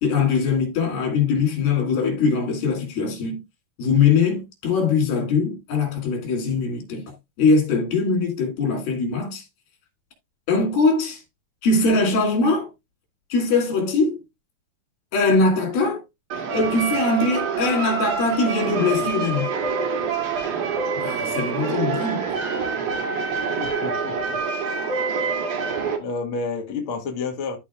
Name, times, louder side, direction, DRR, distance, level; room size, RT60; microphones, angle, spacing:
voice 1, 0.0-3.4 3.8-7.1 7.4-9.4 10.5-11.2 11.6-12.7 13.3-14.2 15.1-16.0 16.5-19.5 21.0-22.2, left 4 dB, 80° left, 4.5 m, -21 dB
sound 1, 16.3-26.0, right 5 dB, 60° right, 3.1 m, -26 dB
voice 2, 23.6-24.4 24.7-24.9 25.9-27.6, left 4 dB, 45° left, 1.9 m, -30 dB
13.0 x 5.2 x 2.4 m
omnidirectional pair, 4.2 m